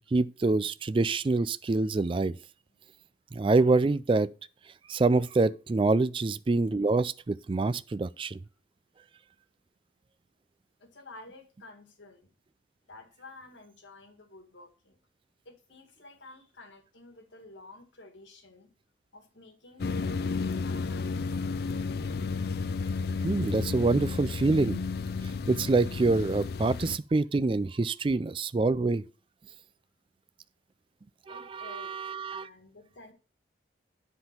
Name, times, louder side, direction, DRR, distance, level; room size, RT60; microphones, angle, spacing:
voice 1, 0.1-2.3 3.3-4.3 4.9-8.4 23.2-24.8 25.5-29.0 31.3-32.5, right 3 dB, 30° right, 0.3 m, -26 dB
voice 2, 10.8-12.3 12.9-15.0 15.5-18.7 19.1-21.4 31.3-32.0 32.3-33.1, left 2 dB, 85° left, 1.7 m, -51 dB
sound 1, 19.8-27.0, left 4 dB, 55° left, 0.4 m, -32 dB
10.5 x 3.8 x 5.7 m
head